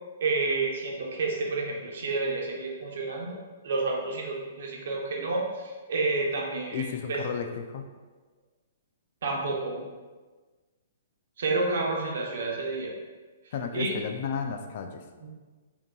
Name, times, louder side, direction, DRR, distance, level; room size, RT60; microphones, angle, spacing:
voice 1, 0.2-3.4 3.6-6.8 7.1-7.2 9.2-9.8 11.4-12.9 13.7-13.9 15.2-15.3, right 3 dB, 65° right, -1 dB, 0.9 m, -29 dB
voice 2, 6.7-7.8 13.5-15.0, left 6 dB, 45° left, 6 dB, 0.3 m, -33 dB
5.1 x 2.8 x 2.3 m, 1.3 s
hypercardioid pair, 165°, 0 cm